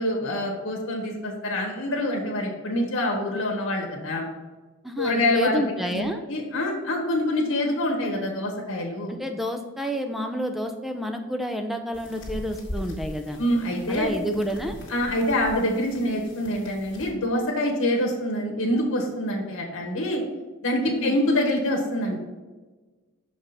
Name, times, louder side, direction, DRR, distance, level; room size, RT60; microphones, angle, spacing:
voice 1, 0.0-4.2 5.0-5.6 5.9-9.1 13.4-14.1 14.9-20.2 20.6-22.2, left 1 dB, 85° left, -1 dB, 1.5 m, -25 dB
voice 2, 4.8-6.2 9.1-13.4 13.9-14.8 20.9-21.2, equal, ahead, 5 dB, 0.5 m, -29 dB
sound 1, 11.9-17.1, left 1 dB, 60° left, 1.7 m, -40 dB
6.1 x 5.2 x 4.1 m, 1.3 s
head